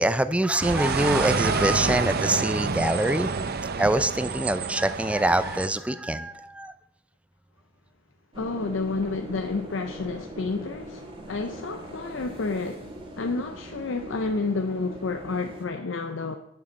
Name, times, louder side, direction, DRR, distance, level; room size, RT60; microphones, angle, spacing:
voice 1, 0.0-6.7, right 1 dB, 5° right, 0.5 m, -25 dB
sound 1, 0.6-5.7, right 4 dB, 55° right, 0.6 m, -28 dB
sound 2, 8.3-15.6, right 1 dB, 25° right, 1.9 m, -41 dB
voice 2, 8.4-11.0 11.3-12.8 13.2-16.4, left 3 dB, 80° left, 0.6 m, -30 dB
11.0 x 7.1 x 5.2 m
head